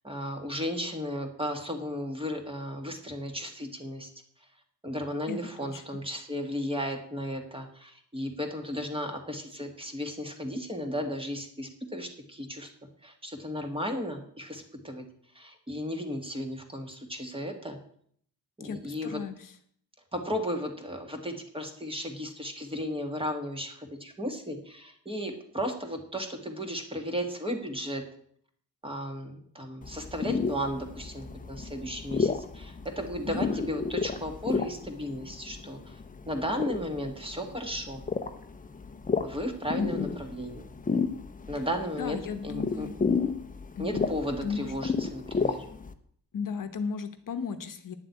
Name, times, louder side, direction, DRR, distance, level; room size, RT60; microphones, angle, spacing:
voice 1, 0.0-4.1 4.8-12.7 13.0-15.1 15.3-17.8 18.6-19.2 20.1-28.0 28.8-36.0 36.3-38.0 39.2-40.7 41.5-42.9 43.8-45.6, equal, 15° right, 4 dB, 1.8 m, -35 dB
voice 2, 5.3-5.8 18.6-19.5 33.3-33.6 39.8-40.2 42.0-43.0 43.7-44.1 44.4-44.8 46.3-48.0, left 5 dB, 55° left, 9 dB, 1.0 m, -35 dB
sound 1, 29.8-45.9, left 5 dB, 20° left, 0.7 m, -32 dB
10.0 x 7.5 x 8.1 m, 0.63 s
wide cardioid pair, 150°, 38 cm